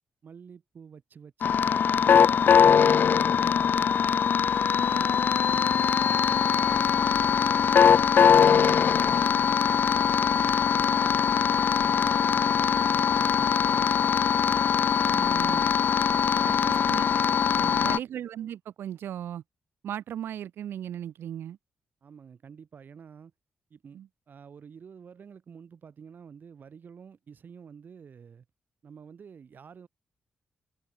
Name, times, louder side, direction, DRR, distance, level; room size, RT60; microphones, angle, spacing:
voice 1, 0.2-4.2 4.6-7.8 8.1-11.4 11.8-14.1 16.1-16.9 17.6-18.0 22.0-23.3 23.7-28.5 28.8-29.9, right 6 dB, 55° right, 3.8 m, -48 dB
sound 1, 1.4-18.0, left 7 dB, 60° left, 0.6 m, -22 dB
voice 2, 8.4-8.8 15.0-15.7 16.4-19.4 19.8-21.6 23.9-24.1, right 10 dB, 80° right, 0.7 m, -37 dB
cardioid pair, 90°, 4 cm